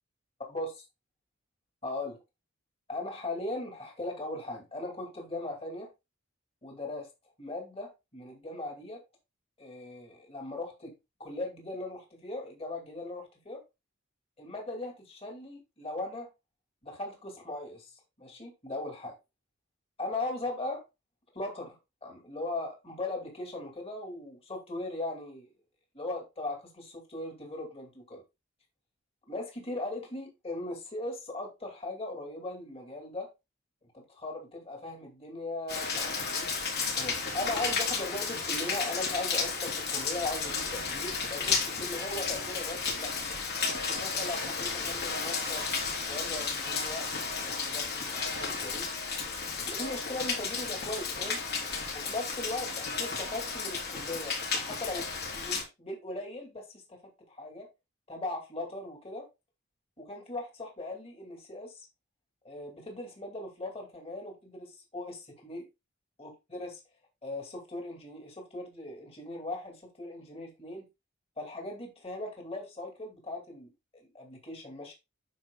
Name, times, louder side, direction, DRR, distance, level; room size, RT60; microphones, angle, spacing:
voice 1, 1.8-2.2 2.9-5.9 6.6-7.1 7.4-9.0 9.6-10.9 11.2-13.6 14.4-16.3 16.8-17.9 18.2-19.1 20.0-20.8 21.3-25.5 25.9-28.2 29.3-33.3 33.9-36.5 37.0-43.3 43.9-45.7 46.1-47.1 47.4-49.0 49.6-51.4 51.9-52.7 53.0-57.0 57.3-57.7 58.1-59.3 60.0-61.7 62.4-65.7 66.2-66.8 67.2-70.9 71.4-74.9, left 2 dB, 30° left, 2.5 m, -39 dB
Rain, 35.7-55.6, left 5 dB, 50° left, 3.1 m, -33 dB
9.4 x 6.1 x 2.2 m
head